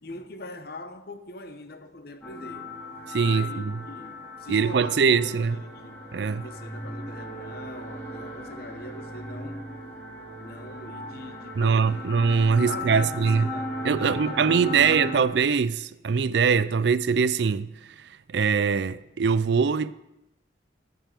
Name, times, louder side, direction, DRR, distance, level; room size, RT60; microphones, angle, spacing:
voice 1, 0.0-2.7 3.2-9.6 10.4-15.4, left 2 dB, 55° left, 0.9 m, -42 dB
sound 1, 2.2-15.2, left 1 dB, 10° left, 2.6 m, -37 dB
voice 2, 3.1-3.8 4.5-5.6 6.1-6.4 11.6-13.5 13.8-17.7 18.3-19.9, right 5 dB, 65° right, 0.4 m, -22 dB
15.0 x 5.4 x 7.4 m
head